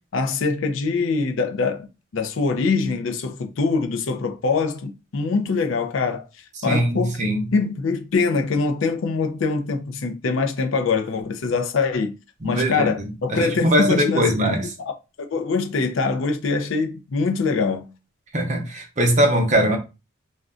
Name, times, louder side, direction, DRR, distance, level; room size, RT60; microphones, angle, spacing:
voice 1, 0.0-6.3 6.6-7.3 7.5-12.1 12.4-14.5 14.8-17.9, left 4 dB, 70° left, 0.5 m, -23 dB
voice 2, 6.6-7.4 12.4-12.9 13.3-14.7 18.3-19.8, equal, 35° right, 0.6 m, -21 dB
2.4 x 2.2 x 3.7 m
head